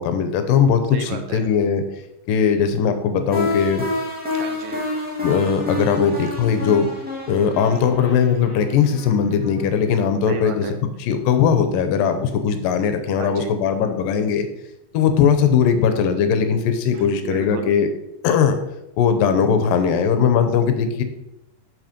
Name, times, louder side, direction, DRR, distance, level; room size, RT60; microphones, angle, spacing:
voice 1, 0.0-1.8 2.3-3.9 5.2-6.9 7.3-10.7 11.1-14.5 14.9-17.9 18.2-18.6 19.0-21.0, left 7 dB, 80° left, 8 dB, 2.4 m, -19 dB
voice 2, 0.9-1.5 4.3-4.9 10.3-10.8 13.1-13.6 16.9-17.7, right 7 dB, 80° right, 7 dB, 2.3 m, -33 dB
sound 1, 3.3-10.1, left 2 dB, 5° right, 1.3 m, -29 dB
7.0 x 6.4 x 5.1 m, 0.85 s
omnidirectional pair, 4.0 m